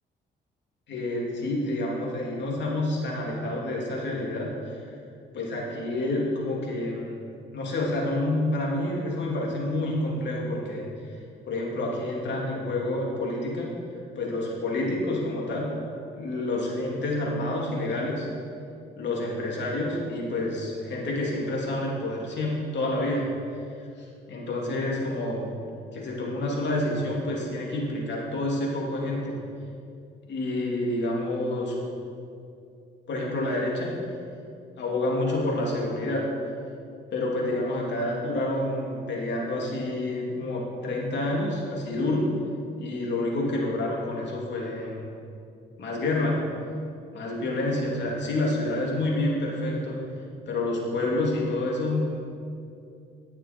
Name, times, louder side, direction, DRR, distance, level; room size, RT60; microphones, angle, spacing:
voice 1, 0.9-4.5 5.3-7.1 7.5-10.9 11.4-13.7 14.1-15.8 16.1-18.3 19.0-23.3 24.0-25.5 25.9-29.3 30.3-31.8 33.1-34.0 34.8-36.2 37.1-42.3 42.8-45.1 45.8-46.4 47.1-50.0 50.5-52.2, left 1 dB, 65° left, -2 dB, 2.9 m, -28 dB
18.0 x 6.7 x 4.5 m, 2.5 s
cardioid pair, 90°, 20 cm